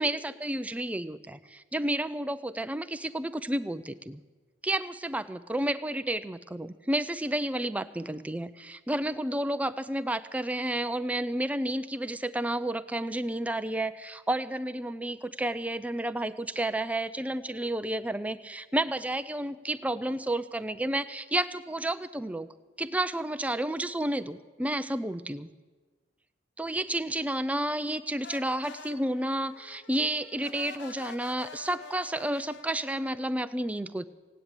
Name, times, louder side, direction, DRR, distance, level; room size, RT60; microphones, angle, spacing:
voice 1, 0.0-4.2 4.6-22.5 22.8-25.5 26.6-34.0, right 1 dB, 5° right, 11 dB, 0.5 m, -31 dB
sound 1, 28.2-33.3, left 5 dB, 60° left, 0.8 m, -47 dB
16.5 x 9.7 x 8.8 m, 1.4 s
head